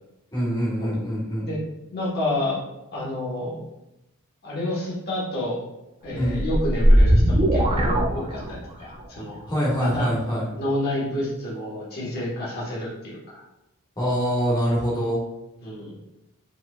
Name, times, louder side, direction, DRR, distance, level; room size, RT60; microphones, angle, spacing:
voice 1, 0.3-1.5 6.1-6.4 9.5-10.4 14.0-15.2, equal, 20° left, -7 dB, 1.6 m, -24 dB
voice 2, 1.9-2.6 2.9-3.6 4.4-5.6 6.0-9.4 9.8-10.1 10.6-13.4 15.6-15.9, left 1 dB, 45° left, -7 dB, 1.4 m, -29 dB
sound 1, 6.1-8.8, equal, 25° right, 0.5 m, -19 dB
5.2 x 3.6 x 2.4 m, 0.91 s
head